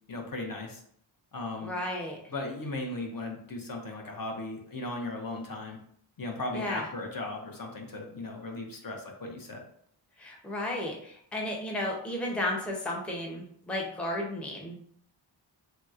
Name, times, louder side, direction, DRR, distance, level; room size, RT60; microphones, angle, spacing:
voice 1, 0.1-0.8 1.3-1.7 2.3-5.8 6.2-9.6, left 2 dB, 50° left, 1 dB, 0.6 m, -37 dB
voice 2, 1.6-2.2 6.5-6.9 10.2-14.8, left 1 dB, 5° left, -2 dB, 0.5 m, -33 dB
3.0 x 2.8 x 2.3 m, 0.65 s
wide cardioid pair, 90°, 46 cm